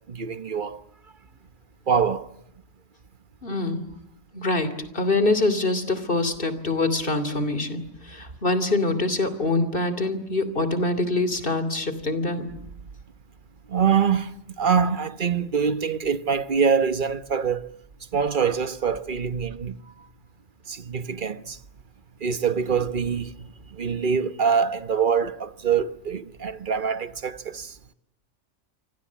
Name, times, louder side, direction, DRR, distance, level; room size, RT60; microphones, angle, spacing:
voice 1, 0.1-0.8 1.9-2.3 13.7-17.7 18.1-19.8 20.7-21.6 22.2-27.7, right 6 dB, 40° right, 1.3 m, -24 dB
voice 2, 3.4-3.9 4.3-12.5, left 2 dB, 40° left, 3.1 m, -25 dB
29.5 x 25.0 x 7.4 m
omnidirectional pair, 1.4 m